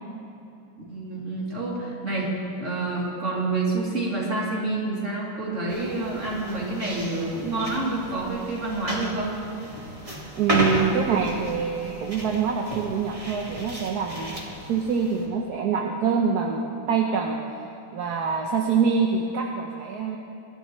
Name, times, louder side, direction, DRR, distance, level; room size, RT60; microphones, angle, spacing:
voice 1, 0.9-2.3 2.6-9.3, right 2 dB, 35° right, -5 dB, 3.4 m, -28 dB
sound 1, 5.7-15.3, equal, 15° right, 1.8 m, -33 dB
voice 2, 10.4-14.4 14.7-17.4 17.9-20.2, right 6 dB, 60° right, 0 dB, 1.3 m, -25 dB
24.5 x 12.0 x 3.2 m, 2.7 s
omnidirectional pair, 2.2 m